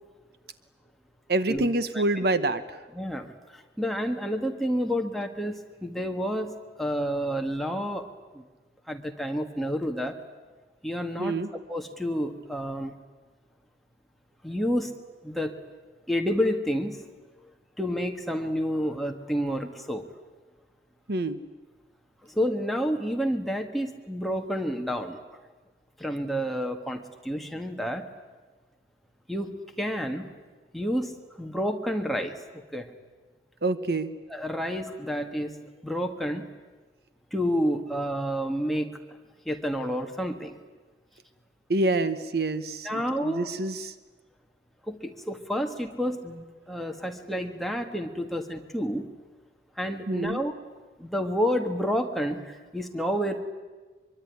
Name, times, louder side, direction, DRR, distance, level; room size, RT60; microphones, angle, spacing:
voice 1, 1.3-2.8 11.2-11.5 21.1-21.4 33.6-34.1 41.7-43.9 50.1-50.4, right 2 dB, 60° right, 12 dB, 1.0 m, -27 dB
voice 2, 3.0-8.1 8.3-8.4 8.9-10.2 10.8-11.4 11.7-12.9 14.4-14.9 15.2-15.6 16.1-17.0 17.8-20.0 22.2-25.2 26.0-28.1 29.3-30.3 30.7-32.9 34.3-35.6 35.8-36.4 37.3-39.0 39.5-40.6 42.8-43.5 44.9-49.1 49.8-50.5 51.0-53.4, equal, ahead, 3 dB, 1.8 m, -29 dB
24.0 x 23.5 x 9.7 m, 1.3 s
head